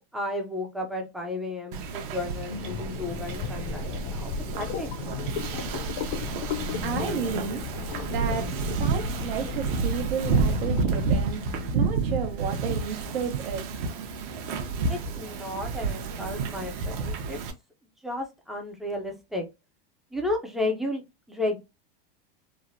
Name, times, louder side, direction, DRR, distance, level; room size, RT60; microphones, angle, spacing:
voice 1, 0.0-3.9 4.2-4.9 14.9-17.4 18.0-19.5 20.1-21.6, left 2 dB, ahead, 0.3 m, -33 dB
Wind / Ocean, 1.7-17.5, right 4 dB, 60° right, 0.7 m, -30 dB
sound 1, 2.5-11.9, left 5 dB, 60° left, 0.6 m, -34 dB
voice 2, 6.8-7.6 8.1-13.8, right 7 dB, 85° right, 0.9 m, -32 dB
3.2 x 2.0 x 2.5 m
supercardioid pair, 145°, 29 cm